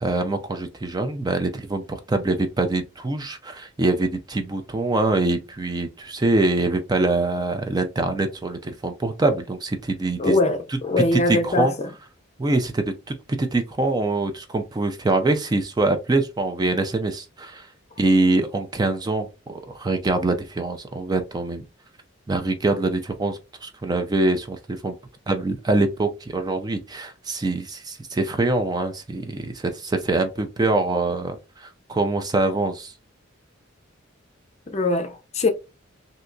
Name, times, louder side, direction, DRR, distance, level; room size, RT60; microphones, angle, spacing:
voice 1, 0.0-10.4 10.7-10.8 11.1-11.7 12.4-17.7 18.0-21.6 22.3-24.9 25.3-32.9, right 2 dB, 20° right, 0.4 m, -24 dB
voice 2, 10.2-11.9 34.7-35.5, left 2 dB, 35° left, 0.5 m, -22 dB
3.3 x 2.7 x 2.6 m
head